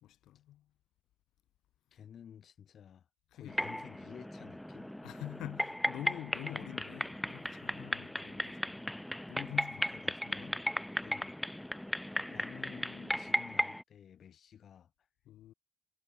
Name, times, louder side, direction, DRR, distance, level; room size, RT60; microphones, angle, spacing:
voice 1, 0.0-0.7 3.3-3.6 5.0-8.9 9.3-9.9 10.3-10.5 15.3-15.5, left 13 dB, 85° left, 0.7 m, -46 dB
voice 2, 1.9-3.1 3.3-4.9 7.9-8.2 9.7-10.6 11.0-11.4 12.3-15.1, left 8 dB, 60° left, 2.0 m, -53 dB
sound 1, 3.5-13.8, left 1 dB, 5° left, 0.3 m, -36 dB
cardioid pair, 90°, 0 cm